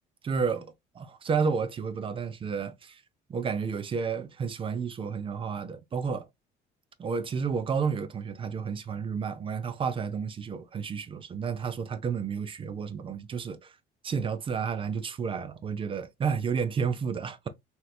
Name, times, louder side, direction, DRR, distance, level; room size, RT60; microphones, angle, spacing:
voice 1, 0.2-0.7 0.9-3.0 3.3-6.3 7.0-13.7 14.0-17.5, right 6 dB, 30° right, 0.4 m, -31 dB
3.1 x 2.9 x 2.3 m
cardioid pair, 110°, 17 cm